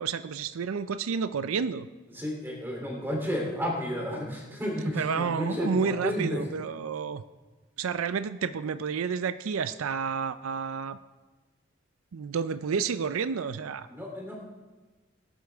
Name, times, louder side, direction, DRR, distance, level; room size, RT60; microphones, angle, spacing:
voice 1, 0.0-1.9 4.9-7.2 7.8-11.0 12.1-13.9, right 6 dB, 85° right, 13 dB, 0.4 m, -30 dB
voice 2, 2.1-6.4 13.9-14.3, equal, 10° right, -1 dB, 3.0 m, -32 dB
18.0 x 11.0 x 3.5 m, 1.3 s
head